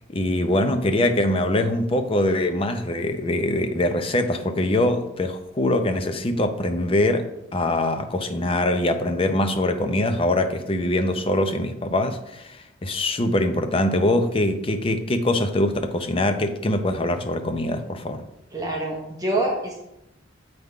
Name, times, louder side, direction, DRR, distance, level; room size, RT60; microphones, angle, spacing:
voice 1, 0.1-18.2, left 1 dB, 30° left, 0.6 m, -23 dB
voice 2, 18.5-19.8, right 1 dB, 20° right, 0.9 m, -26 dB
7.8 x 3.6 x 4.8 m
head